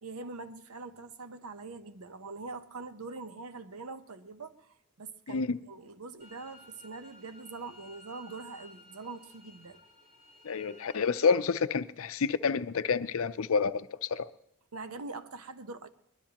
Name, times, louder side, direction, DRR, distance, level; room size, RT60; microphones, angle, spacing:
voice 1, 0.0-9.8 14.7-15.9, right 3 dB, 85° right, 0.9 m, -43 dB
sound 1, 6.2-11.4, left 1 dB, 30° right, 4.1 m, -55 dB
voice 2, 10.4-14.3, left 5 dB, 65° left, 0.5 m, -29 dB
22.5 x 20.5 x 2.9 m
head